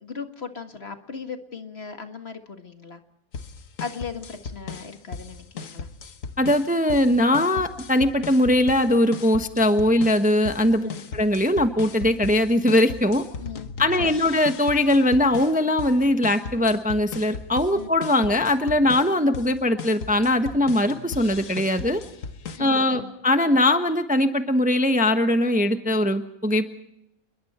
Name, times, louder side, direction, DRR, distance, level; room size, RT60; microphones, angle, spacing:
voice 1, 0.0-3.0 3.8-5.9 10.8-11.0 13.4-13.7 14.0-14.3 17.7-17.9 22.6-23.1, left 5 dB, 45° left, 6 dB, 2.0 m, -37 dB
sound 1, 3.3-22.6, left 5 dB, 65° left, 1.6 m, -37 dB
voice 2, 6.4-13.2 13.8-22.0 22.6-26.7, left 1 dB, 5° right, 7 dB, 1.0 m, -21 dB
29.0 x 22.0 x 4.3 m, 0.82 s
omnidirectional pair, 1.5 m